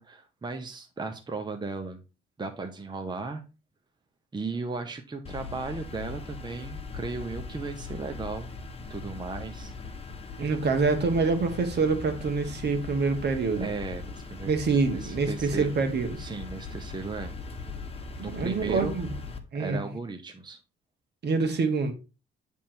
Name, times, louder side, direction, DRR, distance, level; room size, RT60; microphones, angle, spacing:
voice 1, 0.0-2.0 2.4-3.4 4.3-8.5 8.9-9.7 13.6-14.5 15.0-15.7 16.2-17.3 18.2-19.0 19.6-20.6, right 3 dB, 20° right, 1.0 m, -36 dB
sound 1, 5.2-19.4, left 4 dB, 30° left, 1.3 m, -40 dB
voice 2, 10.4-13.7 14.5-16.2 18.3-19.1 19.5-19.8 21.2-21.9, right 4 dB, 55° right, 1.6 m, -26 dB
9.1 x 3.6 x 4.5 m
cardioid pair, 90°, 20 cm